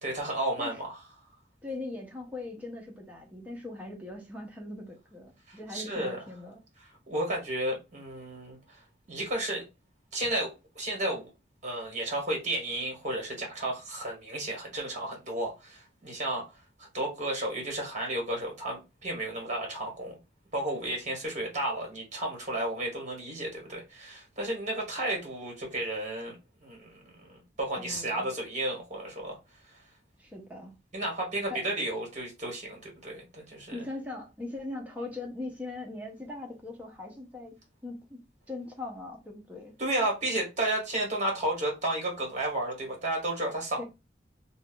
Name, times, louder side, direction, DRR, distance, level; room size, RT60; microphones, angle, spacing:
voice 1, 0.0-0.9 5.5-6.2 7.1-8.8 9.1-9.6 10.1-11.3 11.6-16.4 16.9-20.2 20.5-26.3 26.6-26.9 27.2-27.3 27.6-29.4 30.9-33.8 39.8-43.8, right 1 dB, 40° right, 1.5 m, -32 dB
voice 2, 1.6-6.6 27.8-28.3 30.2-30.7 31.5-31.6 33.7-37.5 37.8-39.8 43.8-43.9, left 2 dB, 10° right, 0.9 m, -40 dB
2.6 x 2.5 x 3.7 m
head